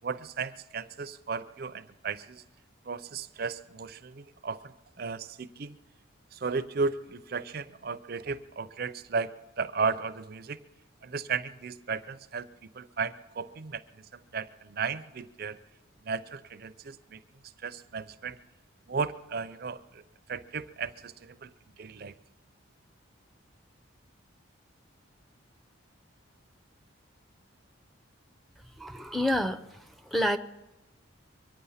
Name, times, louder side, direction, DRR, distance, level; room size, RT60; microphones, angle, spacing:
voice 1, 0.0-2.4 2.9-5.8 6.3-10.6 11.0-15.6 16.0-17.2 17.6-18.4 18.9-20.0 20.3-22.1, right 5 dB, 45° right, 13 dB, 0.5 m, -35 dB
voice 2, 28.8-29.6 30.1-30.4, left 1 dB, ahead, 6 dB, 0.5 m, -27 dB
24.0 x 9.2 x 5.7 m, 1.0 s
head